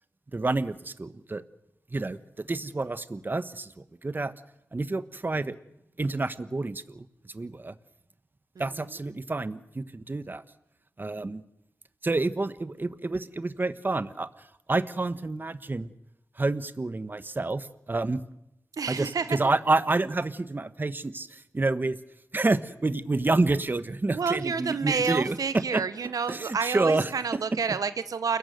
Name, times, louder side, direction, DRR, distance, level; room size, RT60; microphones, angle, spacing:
voice 1, 0.3-1.4 1.9-4.3 4.7-5.6 6.0-7.7 8.6-10.4 11.0-11.4 12.0-15.9 16.4-18.2 18.9-22.0 22.3-25.8 26.3-27.1, right 2 dB, 35° right, 13 dB, 1.2 m, -28 dB
voice 2, 18.7-19.5 24.1-28.4, right 5 dB, 85° right, 13 dB, 0.8 m, -29 dB
29.0 x 17.5 x 7.9 m, 0.84 s
wide cardioid pair, 90°, 6 cm